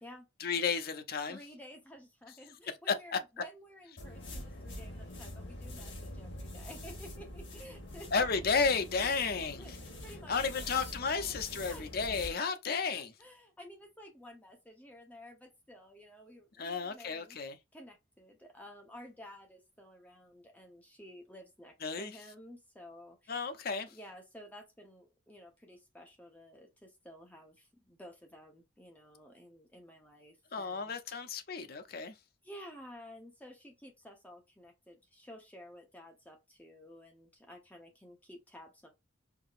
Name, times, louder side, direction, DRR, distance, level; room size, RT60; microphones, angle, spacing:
voice 1, 0.4-1.4 2.9-3.2 8.1-9.6 10.3-13.1 16.6-17.6 21.8-22.1 23.3-23.9 30.5-32.1, left 5 dB, 50° left, 0.6 m, -32 dB
voice 2, 1.3-8.2 9.0-12.2 12.7-17.4 17.7-23.5 23.9-31.2 32.4-38.9, equal, 10° left, 0.8 m, -53 dB
sound 1, 4.0-12.3, left 1 dB, 70° left, 2.4 m, -45 dB
4.7 x 2.8 x 2.4 m
head